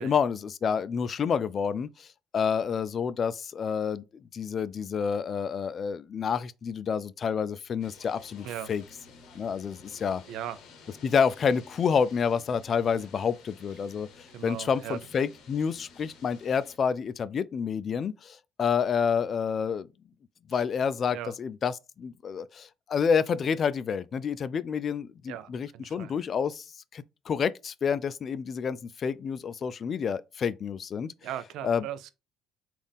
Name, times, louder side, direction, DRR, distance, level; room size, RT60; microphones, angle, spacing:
voice 1, 0.0-2.1 2.3-4.0 4.3-8.8 9.3-10.2 11.0-14.1 14.4-19.9 20.5-26.7 26.9-31.1 31.6-31.8, left 6 dB, 45° left, 0.3 m, -28 dB
sound 1, 7.8-16.8, left 4 dB, 65° left, 0.8 m, -53 dB
voice 2, 10.3-10.6 14.3-15.0 20.5-20.6 21.1-21.3 25.3-26.1 31.2-32.1, right 11 dB, 70° right, 0.4 m, -38 dB
3.9 x 2.4 x 3.5 m
hypercardioid pair, 60°, 0 cm